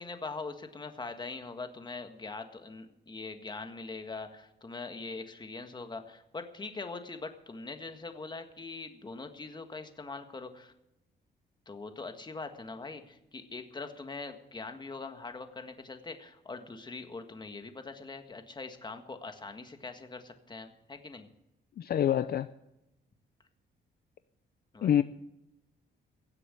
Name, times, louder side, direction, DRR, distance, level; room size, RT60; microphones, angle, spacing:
voice 1, 0.0-10.7 11.7-21.3 24.7-25.0, left 3 dB, 25° left, 1.6 m, -42 dB
voice 2, 21.8-22.5 24.8-25.0, left 10 dB, 55° left, 0.5 m, -26 dB
16.5 x 7.7 x 8.4 m
cardioid pair, 110°, 18 cm